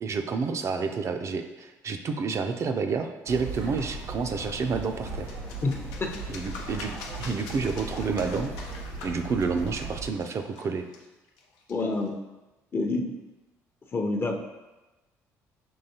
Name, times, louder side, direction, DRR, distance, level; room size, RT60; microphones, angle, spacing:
voice 1, 0.0-5.3 6.3-8.5 9.0-10.9, right 5 dB, 45° right, 7 dB, 0.4 m, -29 dB
sound 1, 3.3-10.1, right 3 dB, 85° right, 1.1 m, -38 dB
sound 2, 4.6-12.1, left 3 dB, 85° left, 0.5 m, -45 dB
voice 2, 5.6-6.1 11.7-12.2 12.7-13.2 13.9-14.4, left 2 dB, 35° left, 3 dB, 0.6 m, -28 dB
5.5 x 2.9 x 2.8 m, 1.1 s
supercardioid pair, 70°, 7 cm